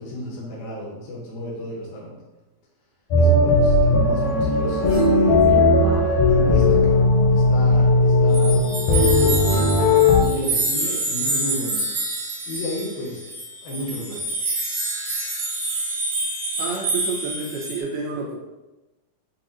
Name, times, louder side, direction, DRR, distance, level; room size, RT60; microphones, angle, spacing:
voice 1, 0.0-2.2 3.2-9.8 10.1-11.8 12.5-13.3 13.6-14.4, left 1 dB, 70° left, -4 dB, 2.6 m, -32 dB
sound 1, 3.1-10.2, left 2 dB, 90° left, 1.7 m, -17 dB
sound 2, 4.6-6.9 8.9-10.9 11.5-11.6, right 6 dB, 50° left, 1.5 m, -29 dB
sound 3, 8.3-17.8, right 2 dB, 60° right, 2.0 m, -27 dB
voice 2, 16.6-18.3, right 4 dB, 85° right, -3 dB, 2.7 m, -29 dB
7.3 x 2.6 x 2.7 m, 1.1 s
omnidirectional pair, 4.4 m